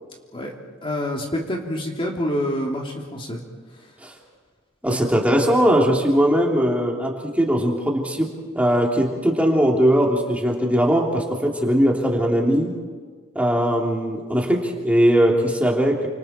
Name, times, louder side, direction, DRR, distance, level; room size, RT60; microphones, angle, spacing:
voice 1, 0.8-3.4 4.9-5.0, equal, 25° left, 0 dB, 2.9 m, -27 dB
voice 2, 4.8-8.3 8.5-12.7 13.3-16.1, equal, 5° right, -1 dB, 3.1 m, -20 dB
30.0 x 27.0 x 4.5 m, 1.6 s
head